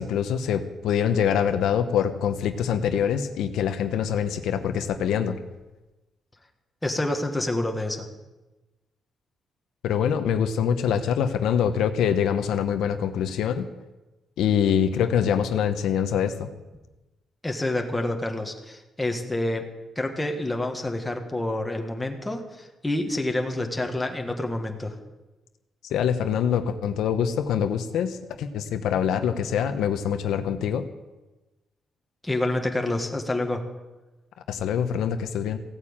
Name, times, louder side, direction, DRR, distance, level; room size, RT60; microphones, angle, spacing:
voice 1, 0.0-5.4 9.8-13.7 14.4-16.5 25.9-30.9 34.5-35.6, left 8 dB, 85° left, 8 dB, 1.0 m, -24 dB
voice 2, 6.8-8.1 17.4-19.7 19.9-25.0 32.2-33.6, left 1 dB, 10° left, 3 dB, 1.6 m, -28 dB
16.0 x 8.9 x 8.8 m, 1.1 s
cardioid pair, 160°, 0 cm